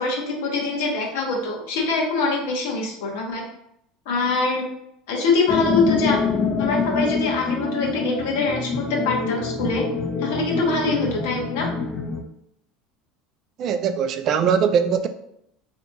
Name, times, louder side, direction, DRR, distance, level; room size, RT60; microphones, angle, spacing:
voice 1, 0.0-3.4 4.1-4.7 5.1-6.2 6.6-9.8 10.2-11.7, left 3 dB, 80° left, 0.9 m, -24 dB
sound 1, 5.5-12.2, left 5 dB, 30° left, 0.4 m, -25 dB
voice 2, 13.6-15.1, right 7 dB, 45° right, 0.3 m, -21 dB
3.4 x 2.8 x 2.6 m
supercardioid pair, 120°, 0 cm